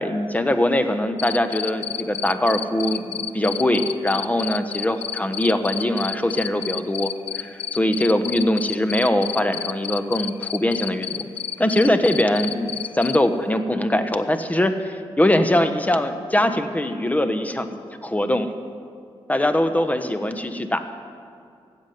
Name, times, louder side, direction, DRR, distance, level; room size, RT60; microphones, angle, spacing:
voice 1, 0.0-11.3 11.6-18.5 19.3-20.8, left 1 dB, 15° left, 8 dB, 1.2 m, -22 dB
Cricket, 1.2-13.2, left 9 dB, 65° left, 0.5 m, -29 dB
16.0 x 7.4 x 9.4 m, 2.4 s
cardioid pair, 60°, 11 cm